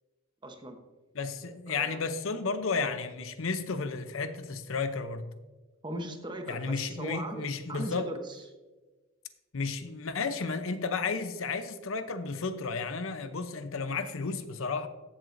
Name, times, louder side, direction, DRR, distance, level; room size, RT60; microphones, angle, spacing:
voice 1, 0.4-0.8 1.7-2.1 5.8-8.4, right 1 dB, 20° right, 0.9 m, -39 dB
voice 2, 1.1-5.3 6.5-8.1 9.5-14.9, left 4 dB, 70° left, 0.7 m, -33 dB
14.5 x 7.6 x 2.6 m
head